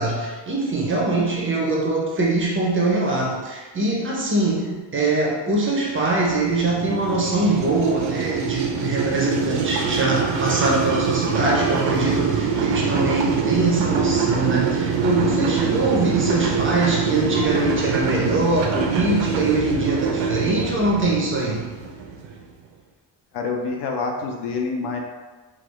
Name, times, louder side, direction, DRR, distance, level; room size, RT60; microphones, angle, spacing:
voice 1, 0.0-21.7, right 2 dB, 30° right, -3 dB, 0.4 m, -22 dB
sound 1, 5.8-22.5, right 5 dB, 85° right, 0.6 m, -25 dB
voice 2, 23.3-25.0, left 4 dB, 65° left, 1 dB, 0.6 m, -26 dB
3.4 x 2.3 x 3.0 m, 1.3 s
wide cardioid pair, 175°, 44 cm